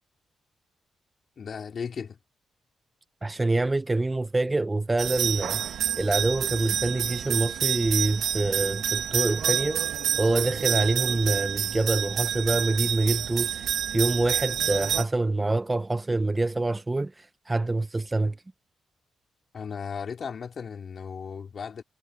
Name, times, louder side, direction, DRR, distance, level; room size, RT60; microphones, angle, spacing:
voice 1, 1.4-2.2 19.5-21.8, left 6 dB, 45° left, 3.3 m, -36 dB
voice 2, 3.2-13.6 13.9-17.1 17.5-18.3, right 2 dB, 15° right, 0.4 m, -26 dB
sound 1, 5.0-15.0, right 9 dB, 75° right, 1.0 m, -28 dB
wide cardioid pair, 165°, 0 cm